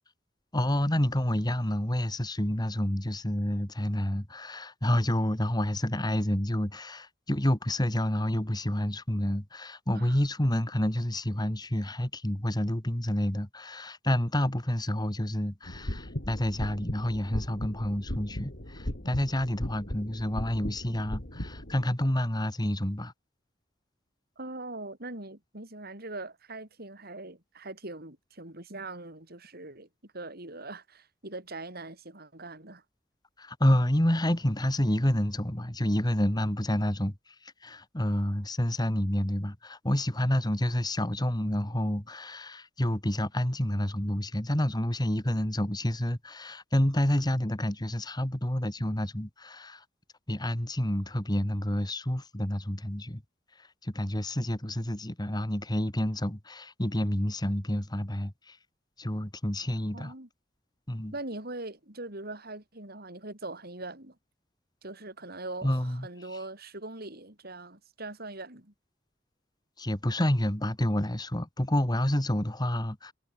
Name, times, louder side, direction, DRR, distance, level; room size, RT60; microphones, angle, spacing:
voice 1, 0.5-23.1 33.4-49.8 50.3-53.2 53.6-58.6 59.0-60.1 60.9-61.1 65.6-66.1 69.8-73.1, left 1 dB, 20° left, 2.4 m, -29 dB
sound 1, 15.7-21.8, equal, 55° left, 4.4 m, -37 dB
voice 2, 24.4-32.8 59.9-60.3 61.1-64.2 64.8-68.7, right 2 dB, 55° right, 7.5 m, -41 dB
head